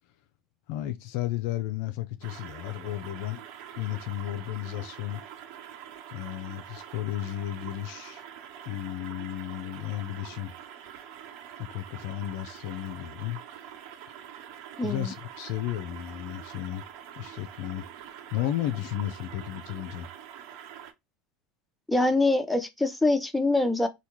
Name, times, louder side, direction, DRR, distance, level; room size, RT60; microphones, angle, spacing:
voice 1, 0.7-3.4 3.8-5.2 6.1-8.2 8.6-10.5 11.6-13.4 14.8-16.8 17.2-17.9 18.3-20.1, left 13 dB, 60° left, 0.3 m, -33 dB
sound 1, 2.2-20.9, right 9 dB, 60° right, 0.5 m, -45 dB
voice 2, 14.8-15.1 21.9-23.9, left 2 dB, 5° left, 0.5 m, -24 dB
3.3 x 2.2 x 2.8 m
hypercardioid pair, 80°, 0 cm